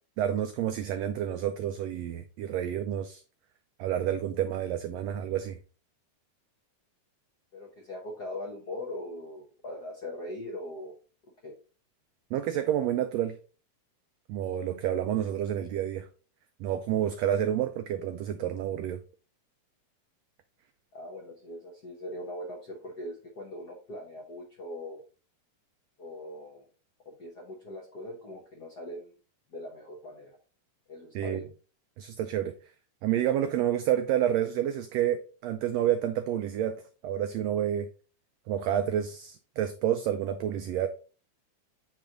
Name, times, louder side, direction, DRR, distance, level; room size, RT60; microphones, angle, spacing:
voice 1, 0.2-3.2 3.8-5.6 12.3-13.4 14.3-16.1 16.6-19.0 31.1-31.4 32.0-32.5 33.0-37.9 38.5-40.9, right 10 dB, 90° right, 1.4 m, -29 dB
voice 2, 7.5-10.9 11.4-11.5 20.9-25.0 26.0-26.6 27.0-29.1 29.5-30.4 30.9-31.5, left 1 dB, 80° left, 0.9 m, -41 dB
8.5 x 3.3 x 3.7 m
omnidirectional pair, 3.5 m